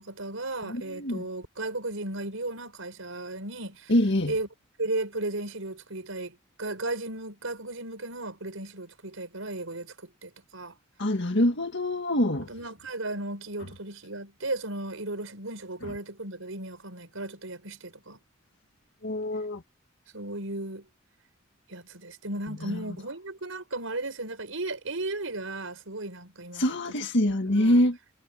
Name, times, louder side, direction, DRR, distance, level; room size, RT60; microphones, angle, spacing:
voice 1, 0.0-3.9 4.3-4.5 4.8-10.8 12.5-18.2 20.1-20.9 21.7-27.8, right 2 dB, 75° right, 5.4 m, -35 dB
voice 2, 0.7-1.2 3.9-4.3 11.0-12.5 19.0-19.6 26.6-28.0, left 1 dB, 60° left, 1.9 m, -25 dB
head